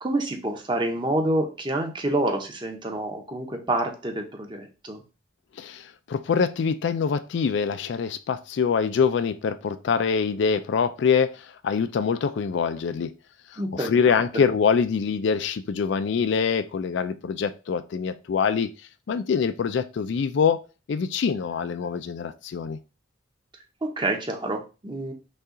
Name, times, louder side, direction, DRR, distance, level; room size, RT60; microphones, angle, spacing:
voice 1, 0.0-5.0 13.6-13.9 23.8-25.1, right 1 dB, 25° right, 0.7 m, -27 dB
voice 2, 5.6-13.1 13.5-18.7 19.1-20.6 20.9-22.8, left 6 dB, 65° left, 0.3 m, -24 dB
5.4 x 2.4 x 3.8 m
head